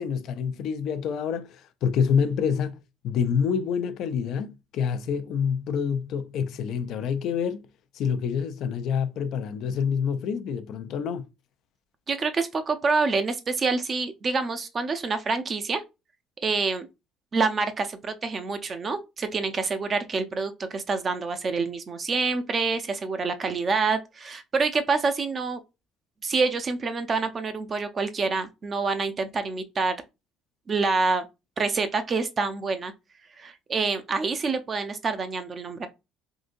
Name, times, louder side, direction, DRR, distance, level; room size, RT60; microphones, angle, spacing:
voice 1, 0.0-7.7 7.9-11.3, left 7 dB, 65° left, 0.4 m, -27 dB
voice 2, 12.1-15.8 16.4-16.9 17.3-25.6 26.2-29.9 30.7-31.3 31.6-32.9 33.4-35.9, right 4 dB, 30° right, 0.5 m, -27 dB
3.7 x 2.7 x 2.5 m
cardioid pair, 115°, 0 cm